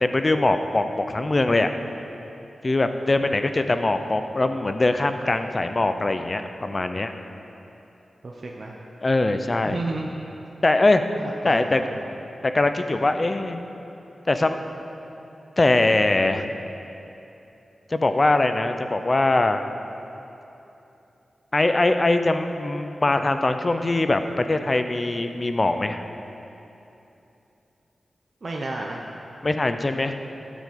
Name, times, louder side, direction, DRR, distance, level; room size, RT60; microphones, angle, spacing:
voice 1, 0.0-1.7 2.6-7.1 9.0-9.8 10.6-11.0 11.4-11.8 12.5-13.6 14.3-14.6 15.6-16.5 17.9-19.6 21.5-26.0 29.4-30.1, left 2 dB, 35° left, 8 dB, 0.6 m, -22 dB
voice 2, 8.2-8.8 9.6-10.1 11.2-12.0 28.4-29.0, right 2 dB, 50° right, -1 dB, 0.8 m, -32 dB
13.0 x 5.2 x 8.5 m, 2.9 s
wide cardioid pair, 95°, 0 cm